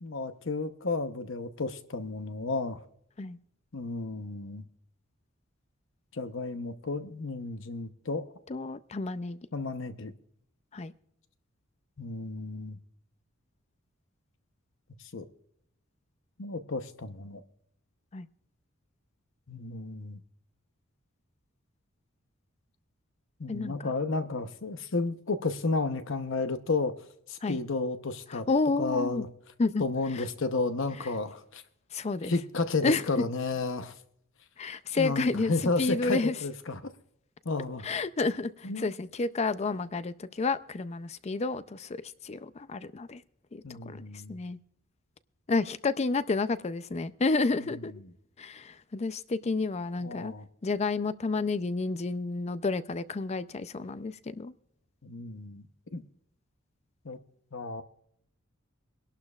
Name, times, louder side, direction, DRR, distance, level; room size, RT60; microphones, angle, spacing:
voice 1, 0.0-2.8 3.7-4.7 6.1-8.3 9.5-10.1 12.0-12.8 15.1-15.2 16.4-17.4 19.5-20.2 23.4-26.9 27.3-28.5 28.8-29.3 29.8-31.6 32.2-33.9 35.0-36.8 37.4-37.9 38.6-38.9 43.6-44.4 50.0-50.5 55.0-55.7 55.9-56.0 57.0-57.2 57.5-57.8, left 3 dB, 60° left, 10 dB, 0.8 m, -32 dB
voice 2, 8.5-9.4 10.7-10.9 18.1-18.3 23.5-23.9 27.4-27.6 28.3-29.2 29.6-29.8 30.1-30.2 31.9-32.3 32.8-33.0 34.6-35.5 35.8-36.3 37.8-42.0 42.2-43.2 43.5-44.0 44.3-44.6 45.5-47.9 48.4-50.3 50.6-54.5, left 3 dB, 30° left, 14 dB, 0.4 m, -30 dB
24.0 x 11.5 x 2.4 m, 0.71 s
head